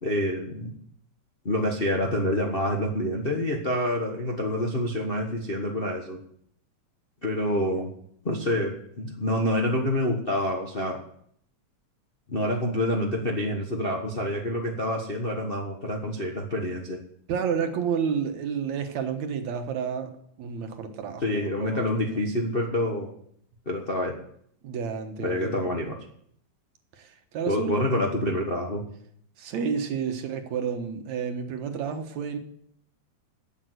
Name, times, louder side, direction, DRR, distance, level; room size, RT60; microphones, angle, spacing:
voice 1, 0.0-0.7 1.4-6.2 7.2-7.9 8.2-11.0 12.3-17.0 21.2-23.1 23.6-24.2 25.2-26.0 27.5-28.8, left 1 dB, 40° left, 0 dB, 0.8 m, -27 dB
voice 2, 17.3-20.1 20.4-22.2 24.6-25.7 26.9-27.8 29.4-32.4, right 7 dB, 75° right, 6 dB, 2.5 m, -30 dB
12.0 x 7.4 x 8.1 m, 0.68 s
omnidirectional pair, 3.3 m